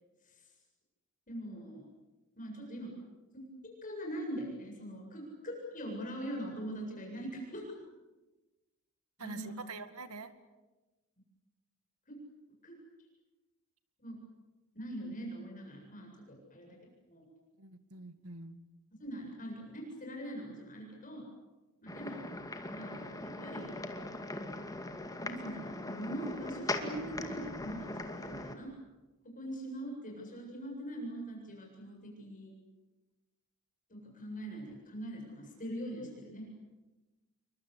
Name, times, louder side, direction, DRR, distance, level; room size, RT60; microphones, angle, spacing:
voice 1, 1.3-1.9 2.4-2.9 3.6-7.6 9.2-9.7 12.1-12.2 12.6-12.7 14.0-14.2 14.7-16.8 17.1-17.2 19.0-21.2 21.8-22.3 22.7-23.7 25.2-28.7 29.2-32.5 33.9-36.5, right 1 dB, 35° left, 0 dB, 7.8 m, -42 dB
voice 2, 9.2-10.3 17.6-18.6, right 3 dB, 80° right, 11 dB, 2.1 m, -45 dB
sound 1, 21.9-28.6, left 2 dB, 15° left, 2.2 m, -40 dB
28.5 x 24.0 x 8.5 m, 1.1 s
head